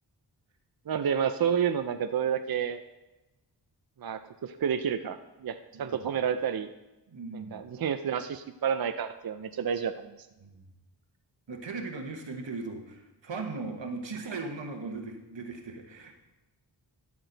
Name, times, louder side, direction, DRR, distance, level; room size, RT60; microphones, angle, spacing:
voice 1, 0.9-2.8 4.0-6.7 7.3-10.3, right 8 dB, 55° right, 9 dB, 0.5 m, -30 dB
voice 2, 7.1-7.6 10.4-10.7 11.5-16.1, right 3 dB, 80° right, 4 dB, 1.3 m, -38 dB
13.5 x 6.1 x 4.0 m, 1.0 s
wide cardioid pair, 55°, 44 cm